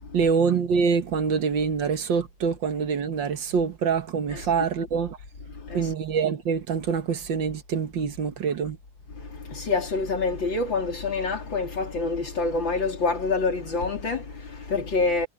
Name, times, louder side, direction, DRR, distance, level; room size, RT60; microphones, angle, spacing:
voice 1, 0.1-5.2 5.7-8.8, right 6 dB, 65° right, 1.9 m, -25 dB
voice 2, 5.5-5.9 9.1-15.3, left 3 dB, 65° left, 4.3 m, -27 dB
omnidirectional pair, 2.2 m